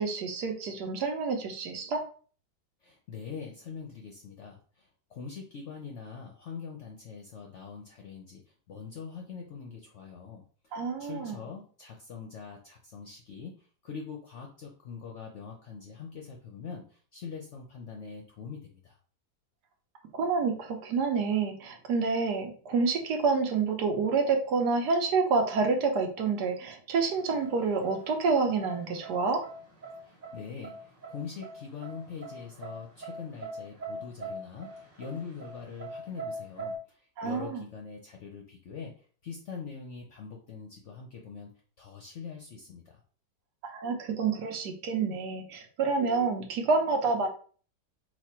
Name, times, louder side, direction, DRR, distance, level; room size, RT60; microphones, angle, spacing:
voice 1, 0.0-2.0 10.7-11.5 20.1-29.4 37.2-37.6 43.6-47.3, right 4 dB, 70° right, 3 dB, 1.3 m, -28 dB
voice 2, 2.8-8.4 8.7-10.4 11.0-19.0 30.0-38.9 39.2-41.5 41.8-43.0, left 6 dB, 60° left, 1 dB, 0.8 m, -43 dB
sound 1, 27.1-36.8, right 2 dB, 45° right, 1.6 m, -43 dB
4.2 x 2.4 x 4.3 m, 0.42 s
omnidirectional pair, 1.9 m